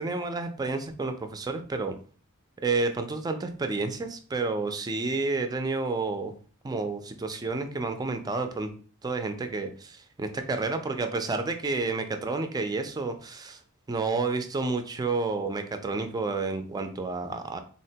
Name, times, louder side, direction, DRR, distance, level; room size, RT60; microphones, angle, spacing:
voice 1, 0.0-1.9 2.6-6.3 6.6-8.7 9.0-13.6 13.9-17.6, right 3 dB, 20° right, 7 dB, 0.3 m, -30 dB
3.8 x 2.1 x 2.7 m, 0.41 s
head